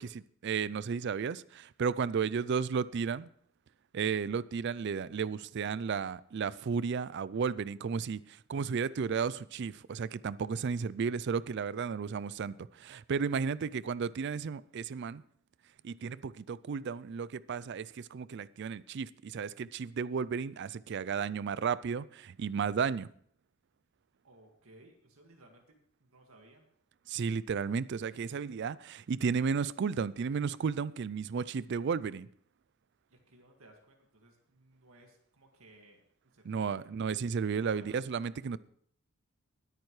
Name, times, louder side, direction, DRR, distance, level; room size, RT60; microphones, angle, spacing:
voice 1, 0.0-3.3 3.9-15.2 15.8-23.1 27.1-32.3 36.5-38.6, right 6 dB, 50° right, 0.3 m, -33 dB
voice 2, 24.2-25.6 26.0-26.6 33.1-36.0 36.3-36.8 37.6-38.0, right 2 dB, 70° right, 2.0 m, -59 dB
20.0 x 9.0 x 3.2 m
head